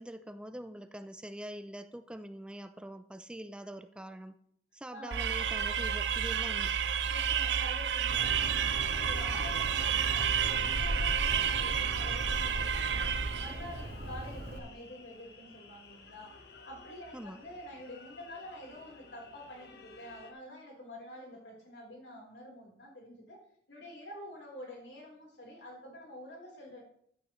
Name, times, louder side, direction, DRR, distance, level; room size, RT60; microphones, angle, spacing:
voice 1, 0.0-4.4 4.7-6.7 17.1-17.4, right 1 dB, 5° right, 10 dB, 0.4 m, -44 dB
voice 2, 4.9-5.2 7.1-16.4 16.6-23.4 23.7-26.8, left 1 dB, 85° left, -1 dB, 3.9 m, -48 dB
sound 1, 5.1-13.7, right 8 dB, 90° right, 0.5 m, -30 dB
Bird, 8.1-14.6, equal, 65° right, 1.6 m, -38 dB
sound 2, 8.2-20.3, left 4 dB, 65° left, 1.3 m, -51 dB
14.5 x 9.0 x 3.2 m, 0.68 s
head